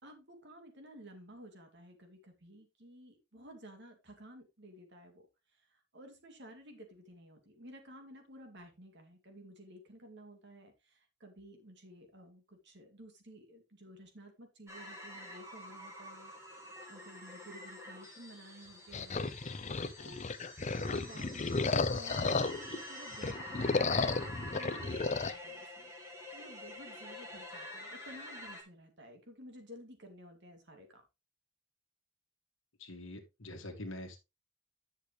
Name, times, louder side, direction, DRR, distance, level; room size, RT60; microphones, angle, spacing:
voice 1, 0.0-5.2 5.6-16.3 16.9-19.2 20.0-20.3 20.7-24.0 24.5-25.9 26.3-31.0, equal, 55° right, 5 dB, 2.6 m, -53 dB
sound 1, 14.7-28.6, left 1 dB, 15° right, 2.6 m, -47 dB
sound 2, 18.9-22.8 23.1-25.3, left 3 dB, 35° left, 0.6 m, -33 dB
voice 2, 32.8-34.2, left 1 dB, 65° left, 3 dB, 1.9 m, -44 dB
10.5 x 6.6 x 3.1 m, 0.25 s
head